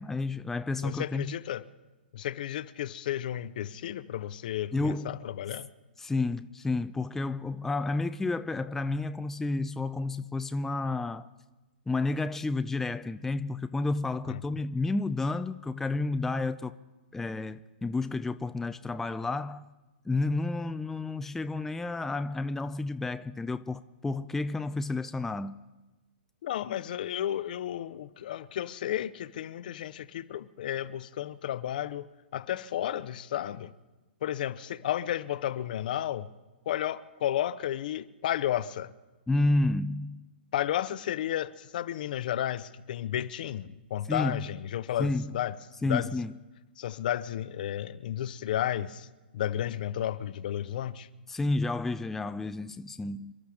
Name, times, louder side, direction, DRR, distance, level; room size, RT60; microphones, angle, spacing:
voice 1, 0.0-1.4 4.7-5.2 6.0-11.3 11.9-16.7 17.1-19.6 20.1-25.6 39.3-40.2 44.1-44.5 45.0-45.3 45.8-46.4 51.3-53.3, left 2 dB, 5° left, 0.4 m, -31 dB
voice 2, 0.8-1.6 2.1-5.7 14.3-14.4 26.4-32.1 32.3-33.7 34.2-36.3 36.7-38.9 40.5-45.6 45.8-46.1 46.8-49.1 49.3-51.1, left 11 dB, 55° left, 0.7 m, -32 dB
28.0 x 12.5 x 3.7 m
figure-of-eight pair, 115°, 6 cm